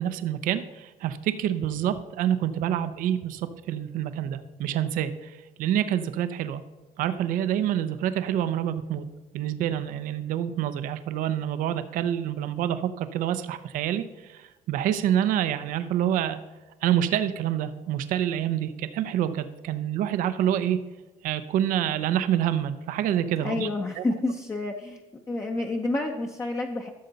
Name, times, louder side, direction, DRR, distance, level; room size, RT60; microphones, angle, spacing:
voice 1, 0.0-6.6 7.0-9.0 9.3-16.4 16.8-20.8 21.2-23.7 24.0-24.1, right 10 dB, 75° right, 11 dB, 0.7 m, -27 dB
voice 2, 23.4-25.0 25.3-26.9, left 2 dB, 20° left, 2 dB, 0.7 m, -29 dB
13.5 x 6.6 x 4.0 m, 1.1 s
cardioid pair, 110°, 14 cm